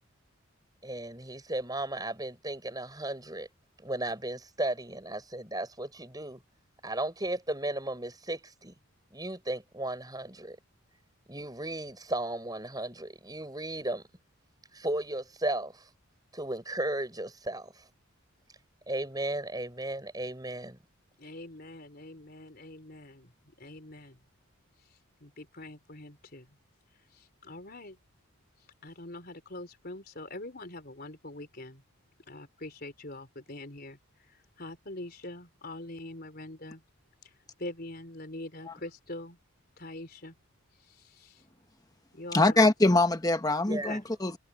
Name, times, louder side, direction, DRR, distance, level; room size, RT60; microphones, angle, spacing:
voice 1, 0.8-3.5 3.8-6.4 6.8-8.7 9.1-10.6 11.3-14.0 14.7-15.9 16.3-17.8 18.9-20.8 43.7-44.0, right 1 dB, 15° right, 6.9 m, -35 dB
voice 2, 21.2-23.3 23.6-24.2 24.9-26.5 27.1-28.0 28.8-31.8 32.3-36.8 37.2-37.3 37.6-39.4 39.8-40.3 40.8-41.4 42.1-42.6 43.7-44.0, left 2 dB, 45° left, 4.2 m, -44 dB
voice 3, 42.3-44.4, left 2 dB, 15° left, 1.1 m, -23 dB
head